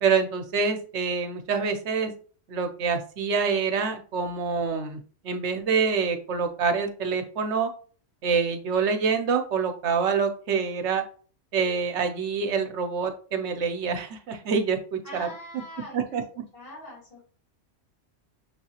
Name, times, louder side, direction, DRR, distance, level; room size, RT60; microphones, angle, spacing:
voice 1, 0.0-2.1 2.5-7.7 8.2-11.0 11.5-15.3 15.9-16.2, right 5 dB, 70° right, 6 dB, 1.0 m, -26 dB
voice 2, 15.0-16.2 16.5-17.2, left 1 dB, 50° left, -5 dB, 2.2 m, -42 dB
6.1 x 2.7 x 2.9 m, 0.41 s
omnidirectional pair, 1.3 m